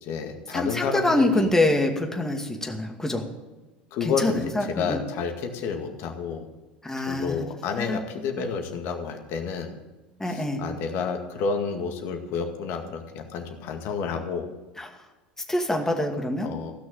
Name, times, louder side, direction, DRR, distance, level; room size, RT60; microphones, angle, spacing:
voice 1, 0.0-1.5 3.9-6.5 7.0-9.7 10.3-14.5 16.4-16.7, left 5 dB, 50° left, 5 dB, 2.0 m, -30 dB
voice 2, 0.5-3.3 4.0-5.0 6.8-7.4 7.8-8.0 10.2-10.6 14.8-14.9 15.5-16.5, left 1 dB, 10° left, 3 dB, 2.3 m, -25 dB
16.0 x 6.2 x 9.2 m, 1.1 s
figure-of-eight pair, 75°, 5 cm